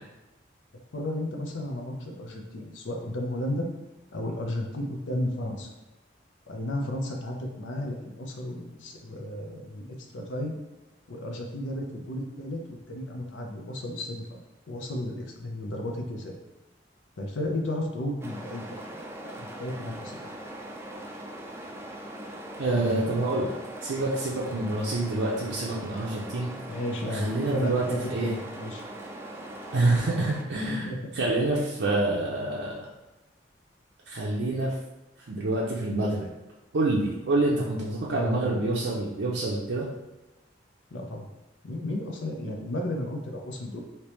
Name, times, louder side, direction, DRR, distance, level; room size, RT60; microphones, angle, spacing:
voice 1, 0.9-3.7 4.1-5.7 6.5-9.9 10.1-10.6 11.1-14.2 14.7-16.3 17.2-20.3 22.7-23.3 26.7-28.8 30.7-31.1 31.5-31.7 38.1-38.6 40.9-41.3 41.6-43.8, left 1 dB, 85° left, 2 dB, 0.6 m, -33 dB
sound 1, 18.2-30.4, right 1 dB, 15° right, 0.3 m, -41 dB
voice 2, 22.6-23.5 23.8-26.5 27.1-28.3 29.7-30.9 31.1-32.9 34.1-34.8 35.3-36.3 36.7-39.9, right 2 dB, 70° right, -5 dB, 0.5 m, -27 dB
3.3 x 2.9 x 3.0 m, 1.1 s
head